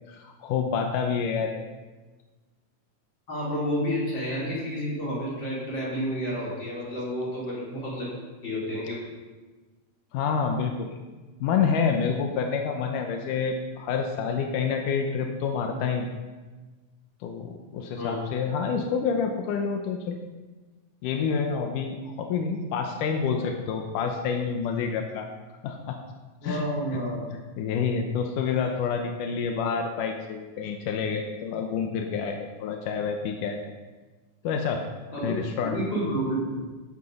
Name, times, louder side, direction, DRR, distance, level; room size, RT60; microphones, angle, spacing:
voice 1, 0.1-1.6 10.1-10.9 11.4-16.1 17.2-20.2 21.0-25.3 25.6-26.0 26.4-27.0 27.3-33.6 34.4-34.8 35.2-35.8, left 6 dB, 85° left, 4 dB, 2.5 m, -28 dB
voice 2, 3.3-8.1 8.4-9.0 18.0-18.2 26.4-27.2 35.1-35.4 35.7-36.4, equal, 35° left, -8 dB, 5.6 m, -30 dB
14.0 x 8.7 x 5.4 m, 1.3 s
omnidirectional pair, 3.7 m